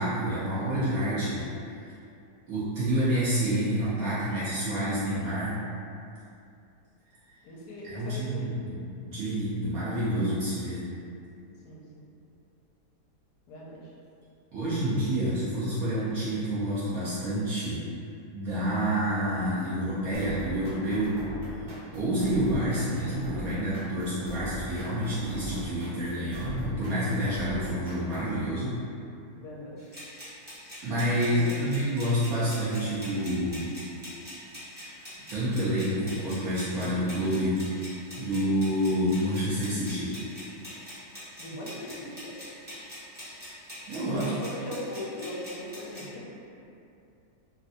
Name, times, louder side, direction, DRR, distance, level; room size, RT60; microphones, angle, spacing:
voice 1, 0.0-1.9 2.5-5.5 7.3-7.4 7.8-8.7 9.1-10.8 14.5-17.8 18.3-21.2 21.5-21.7 21.9-28.7 30.8-33.7 34.8-37.6 38.2-40.1 43.9-44.3, equal, 65° right, -11 dB, 1.0 m, -28 dB
voice 2, 7.4-8.7 11.6-12.1 13.5-13.9 29.4-29.8 31.2-31.8 41.4-42.4 44.1-46.3, left 1 dB, 80° left, -5 dB, 1.1 m, -39 dB
sound 1, 20.1-28.4, right 1 dB, 90° right, 0.5 m, -40 dB
sound 2, 29.8-46.0, equal, 10° right, 0.7 m, -44 dB
3.2 x 2.6 x 2.6 m, 2.6 s
omnidirectional pair, 1.8 m